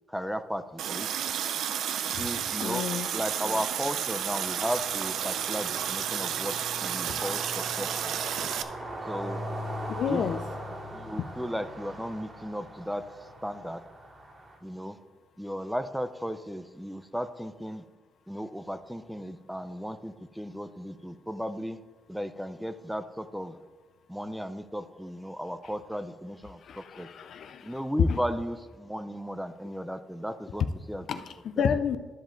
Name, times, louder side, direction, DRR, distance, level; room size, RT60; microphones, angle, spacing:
voice 1, 0.1-1.1 2.2-2.8 3.1-6.5 6.8-8.1 9.1-9.4 10.1-10.2 10.9-13.8 14.6-15.0 15.4-17.8 18.3-21.8 22.1-23.6 24.1-27.1 27.6-30.6 30.9-31.0, equal, ahead, 0.5 m, -35 dB
Water tap faucet, 0.8-8.6, right 9 dB, 75° right, 0.5 m, -31 dB
voice 2, 2.6-3.1 9.9-10.4 11.2-11.3 26.6-28.2 31.1-32.0, left 7 dB, 65° left, 0.5 m, -29 dB
sound 1, 4.3-14.6, right 1 dB, 45° right, 2.2 m, -40 dB
12.5 x 5.0 x 3.9 m
cardioid pair, 90°, 0 cm